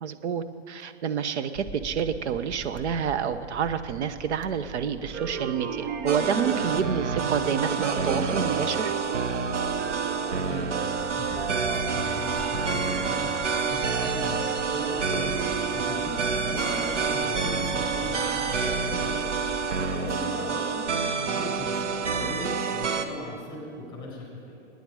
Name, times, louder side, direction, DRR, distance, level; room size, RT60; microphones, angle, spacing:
voice 1, 0.0-8.9 19.8-19.9, right 7 dB, 70° right, 9 dB, 1.2 m, -29 dB
sound 1, 1.5-20.0, right 5 dB, 20° right, 0.8 m, -44 dB
sound 2, 5.1-20.9 21.3-24.1, right 6 dB, 40° right, 1.2 m, -37 dB
sound 3, 6.1-23.0, right 5 dB, 90° right, 1.3 m, -28 dB
voice 2, 11.2-15.4 15.7-19.2 19.7-24.6, left 1 dB, 15° left, -2 dB, 5.2 m, -38 dB
26.5 x 10.0 x 5.0 m, 2.4 s
hypercardioid pair, 125°, 35 cm